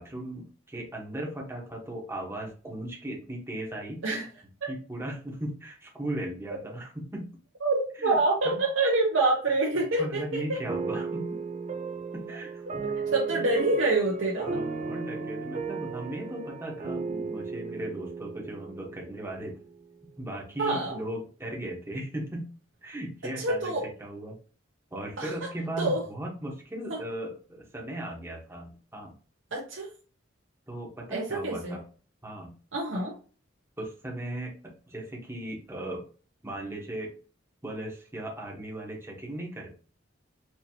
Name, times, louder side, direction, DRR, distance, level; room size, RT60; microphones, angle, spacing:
voice 1, 0.0-4.0 4.7-7.4 8.0-8.2 8.4-8.6 10.0-11.4 12.1-12.6 13.3-13.4 14.4-19.6 20.2-22.5 22.8-23.7 24.0-24.4 24.9-29.1 30.7-31.8 32.2-32.6 33.8-34.5 34.9-36.0 36.4-37.1 37.6-39.7, right 1 dB, 15° right, -2 dB, 1.2 m, -37 dB
voice 2, 7.6-10.6 12.8-14.6 20.6-21.0 23.4-23.9 25.2-25.3 25.8-26.0 26.9-27.0 29.5-29.9 31.1-31.8 32.7-33.1, right 2 dB, 80° right, -3 dB, 1.0 m, -26 dB
sound 1, 10.7-19.8, right 4 dB, 35° right, 0.5 m, -35 dB
4.5 x 2.9 x 2.8 m, 0.37 s
head